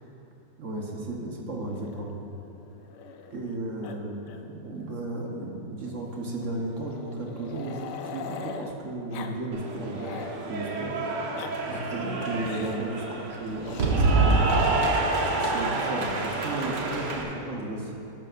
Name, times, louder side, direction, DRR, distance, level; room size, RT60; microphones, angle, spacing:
voice 1, 0.6-2.2 3.3-4.3 4.6-10.1 10.5-11.3 11.6-14.6 15.4-17.9, right 2 dB, 50° right, -1 dB, 1.3 m, -34 dB
Growling, 1.7-3.5 3.8-4.0 4.2-4.4 4.7-4.8 5.9-8.7 9.1-9.4 9.7-10.4 11.1-11.5 12.4-12.8 13.6-13.9 15.0-15.7, left 6 dB, 80° left, 1.2 m, -42 dB
Cheering / Applause, 9.5-17.2, right 3 dB, 80° right, 1.7 m, -27 dB
13.0 x 11.0 x 2.5 m, 2.9 s
omnidirectional pair, 1.8 m